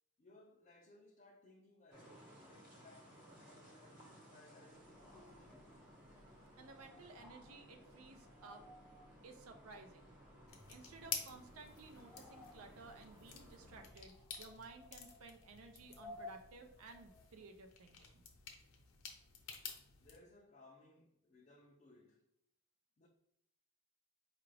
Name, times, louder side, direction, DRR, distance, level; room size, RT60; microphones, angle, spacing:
voice 1, 0.2-5.9 9.0-9.1 20.0-22.2 23.0-23.1, left 2 dB, 35° left, 0.4 m, -64 dB
sound 1, 1.9-13.9, equal, 40° right, 1.0 m, -61 dB
sound 2, 4.8-17.4, left 2 dB, ahead, 0.7 m, -60 dB
voice 2, 6.6-8.6 9.2-10.1 10.7-18.2, right 3 dB, 80° right, 0.5 m, -56 dB
sound 3, 10.5-20.2, left 7 dB, 80° left, 0.7 m, -51 dB
4.7 x 2.4 x 3.2 m
head